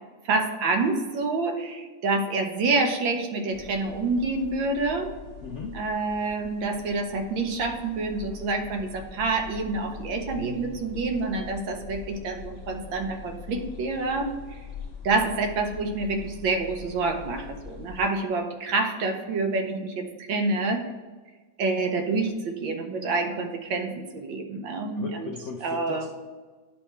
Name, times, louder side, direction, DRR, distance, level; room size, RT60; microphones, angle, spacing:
voice 1, 0.2-5.1 5.7-14.3 15.0-20.8 21.6-25.3 25.6-26.1, right 3 dB, 85° right, 4 dB, 1.6 m, -27 dB
sound 1, 3.5-18.0, left 7 dB, 35° left, 1.2 m, -43 dB
voice 2, 5.4-5.8 25.0-26.1, left 4 dB, 85° left, 2 dB, 0.6 m, -37 dB
10.5 x 3.5 x 4.3 m, 1.4 s
omnidirectional pair, 2.0 m